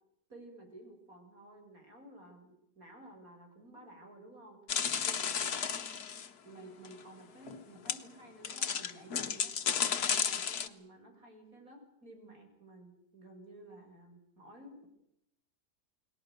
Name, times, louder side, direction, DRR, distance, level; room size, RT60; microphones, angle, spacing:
voice 1, 0.3-4.6 5.0-5.7 6.4-9.5 10.0-14.9, right 1 dB, 55° right, 2 dB, 8.0 m, -53 dB
sound 1, 4.7-6.3 6.9-7.0 7.5-7.6 7.9-8.0 8.4-10.7, left 7 dB, 65° left, 1.9 m, -33 dB
29.5 x 21.0 x 6.6 m, 0.76 s
omnidirectional pair, 1.8 m